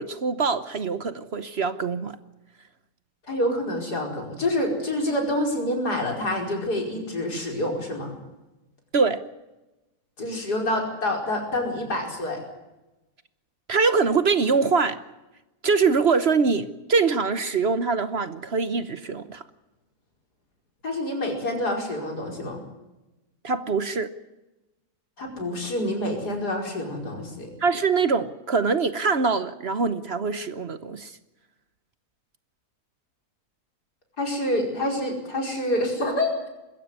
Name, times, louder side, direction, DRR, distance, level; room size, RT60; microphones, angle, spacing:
voice 1, 0.0-2.2 8.9-9.2 13.7-15.0 15.6-19.4 23.4-24.1 27.6-31.1, right 4 dB, 45° right, 12 dB, 1.1 m, -23 dB
voice 2, 3.3-8.1 10.2-12.4 20.8-22.6 25.2-27.5 34.2-36.5, left 1 dB, 85° left, 2 dB, 5.6 m, -27 dB
21.5 x 16.0 x 9.7 m, 1.0 s
omnidirectional pair, 1.7 m